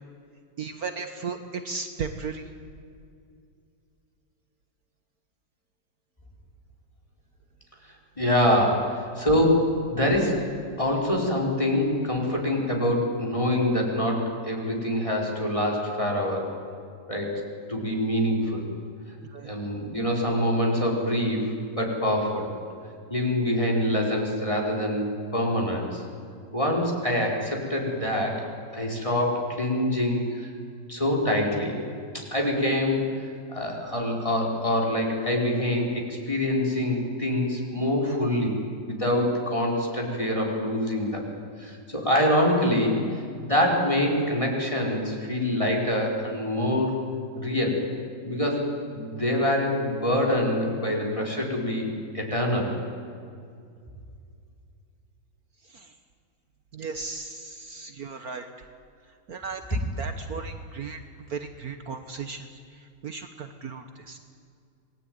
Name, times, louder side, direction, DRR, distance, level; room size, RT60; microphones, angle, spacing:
voice 1, 0.6-2.5 19.2-19.5 55.6-55.9 56.7-58.7 59.3-64.2, right 5 dB, 55° right, 7 dB, 1.6 m, -36 dB
voice 2, 8.2-10.5 10.8-16.5 17.1-17.4 17.7-18.6 19.4-22.5 23.1-26.0 26.5-28.4 28.7-30.5 30.9-31.8 32.1-33.0 33.5-38.5 38.9-41.2 41.6-43.0 43.4-47.0 47.3-47.9 48.2-52.7, left 1 dB, 15° left, -1 dB, 4.6 m, -25 dB
27.0 x 20.0 x 9.4 m, 2.4 s
omnidirectional pair, 2.0 m